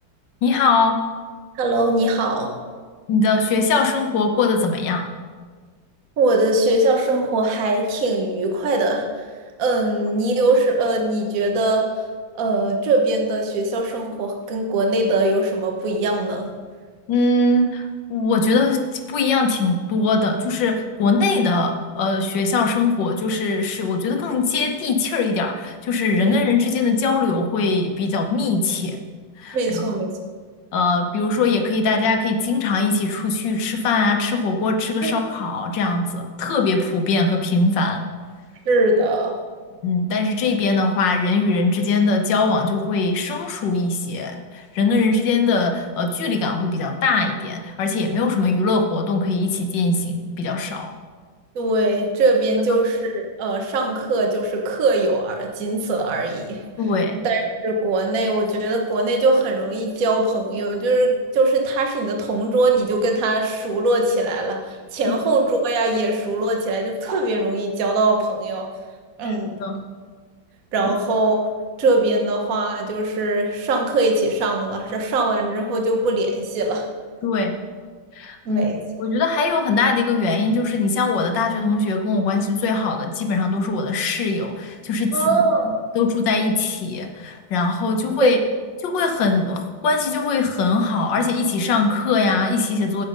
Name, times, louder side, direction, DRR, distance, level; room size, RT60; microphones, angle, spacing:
voice 1, 0.4-1.0 3.1-5.1 17.1-29.0 29.4-29.9 30.7-38.0 39.8-50.9 56.8-57.2 65.1-65.2 69.2-69.8 77.2-77.6 78.1-78.6 79.0-85.4 85.9-88.4 88.8-93.1, left 3 dB, 70° left, 5 dB, 1.6 m, -21 dB
voice 2, 1.5-2.6 6.2-9.3 9.6-12.0 12.4-16.5 26.2-26.4 29.5-30.1 35.0-35.1 38.6-39.4 51.5-56.6 57.2-68.7 69.2-69.6 70.7-71.5 71.8-76.9 78.4-78.8 85.1-85.8 88.2-88.4, right 2 dB, 50° right, 2 dB, 1.4 m, -21 dB
10.0 x 8.1 x 5.2 m, 1.5 s
omnidirectional pair, 2.1 m